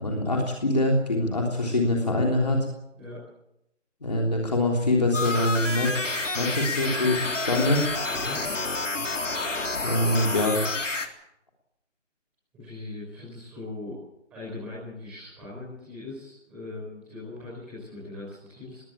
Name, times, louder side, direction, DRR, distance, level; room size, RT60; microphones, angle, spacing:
voice 1, 0.0-2.7 4.0-7.8 9.8-10.6, left 1 dB, 35° left, 0 dB, 3.4 m, -24 dB
sound 1, 5.1-11.1, left 3 dB, 75° left, 3.6 m, -29 dB
voice 2, 12.5-14.0 14.3-18.8, left 2 dB, 5° right, -9 dB, 5.6 m, -40 dB
21.0 x 17.5 x 8.7 m, 0.83 s
figure-of-eight pair, 180°, 37 cm